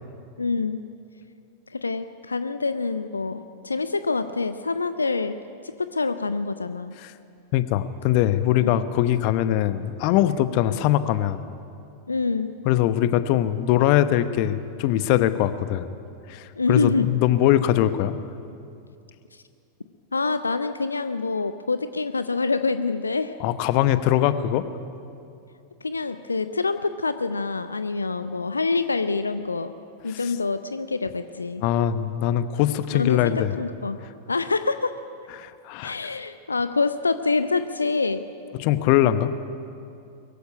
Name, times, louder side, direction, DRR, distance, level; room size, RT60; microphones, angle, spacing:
voice 1, 0.4-0.8 1.7-5.4 5.6-6.9 8.1-8.2 8.6-8.8 12.1-12.5 16.6-17.1 20.1-23.4 25.8-29.7 30.0-31.6 32.9-34.0 34.3-34.9 35.8-38.2, left 4 dB, 80° left, 11 dB, 0.6 m, -26 dB
voice 2, 7.5-11.4 12.6-15.9 16.3-18.2 23.4-24.6 30.1-30.2 31.6-33.5 35.4-36.0 38.6-39.3, left 12 dB, 45° left, 13 dB, 1.0 m, -22 dB
22.5 x 15.0 x 9.8 m, 2.5 s
figure-of-eight pair, 90°, 0 cm